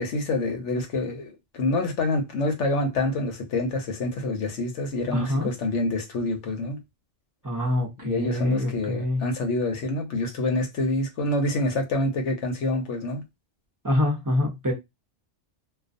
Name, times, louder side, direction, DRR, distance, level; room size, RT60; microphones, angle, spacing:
voice 1, 0.0-6.8 8.0-13.2, left 2 dB, 75° left, 1.0 m, -27 dB
voice 2, 5.1-5.5 7.4-9.3 13.8-14.7, left 1 dB, 20° right, 0.6 m, -25 dB
2.3 x 2.3 x 2.5 m
omnidirectional pair, 1.2 m